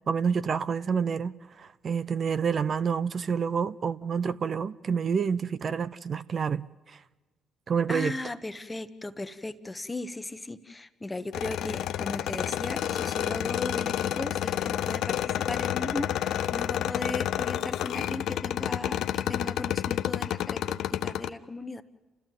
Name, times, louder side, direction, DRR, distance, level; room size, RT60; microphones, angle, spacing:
voice 1, 0.1-7.0 7.7-8.1, right 6 dB, 50° right, 0.6 m, -28 dB
voice 2, 7.9-21.8, left 2 dB, 20° left, 1.2 m, -37 dB
sound 1, 11.3-21.3, left 11 dB, 70° left, 0.7 m, -30 dB
29.5 x 14.0 x 7.8 m
hypercardioid pair, 55°, 0 cm